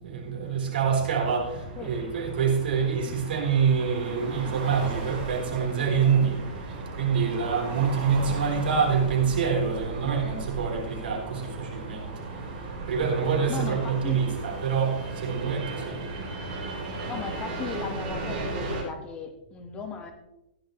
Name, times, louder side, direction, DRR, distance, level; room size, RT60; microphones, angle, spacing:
voice 1, 0.0-6.4 6.9-12.1 12.8-16.0, right 6 dB, 75° right, 0 dB, 4.2 m, -26 dB
sound 1, 1.0-18.8, right 3 dB, 45° right, 4.6 m, -36 dB
voice 2, 13.5-14.2 17.1-20.1, left 5 dB, 20° left, 3 dB, 1.5 m, -36 dB
15.0 x 10.5 x 3.2 m, 0.88 s
hypercardioid pair, 150°, 5 cm